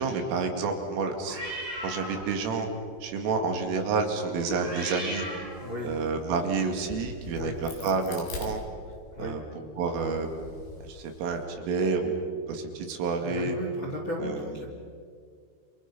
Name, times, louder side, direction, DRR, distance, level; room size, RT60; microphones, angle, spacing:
voice 1, 0.0-1.4 1.8-2.7 3.0-5.3 5.8-8.6 9.2-9.4 9.8-10.3 10.8-11.4 11.7-12.1 12.5-13.6 14.2-14.4, right 4 dB, 80° right, 4 dB, 4.9 m, -29 dB
sound 1, 1.2-2.5 2.8-3.1 4.3-6.1, right 1 dB, 40° right, 7.8 m, -38 dB
voice 2, 5.6-6.0 7.3-7.6 9.1-9.4 13.2-14.7, left 1 dB, 35° left, 0 dB, 2.0 m, -35 dB
Crack, 6.6-9.3 9.8-11.4, left 3 dB, 60° left, 5.6 m, -43 dB
29.0 x 28.0 x 5.6 m, 2.1 s
omnidirectional pair, 5.8 m